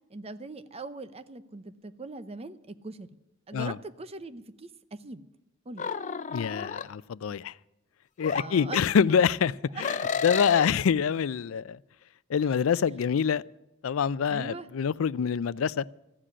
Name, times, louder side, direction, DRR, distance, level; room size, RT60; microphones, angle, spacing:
voice 1, 0.1-3.2 3.5-5.2 5.7-5.9 8.3-8.8 9.7-9.8 12.5-12.6 14.3-14.7, right 3 dB, 30° right, 0.7 m, -41 dB
sound 1, 5.8-6.8 8.2-8.5 9.8-10.7, left 6 dB, 40° left, 0.5 m, -31 dB
voice 2, 6.3-7.5 8.2-10.0 10.2-11.8 12.3-13.4 13.8-15.8, left 7 dB, 90° left, 0.4 m, -26 dB
14.5 x 7.6 x 9.8 m
head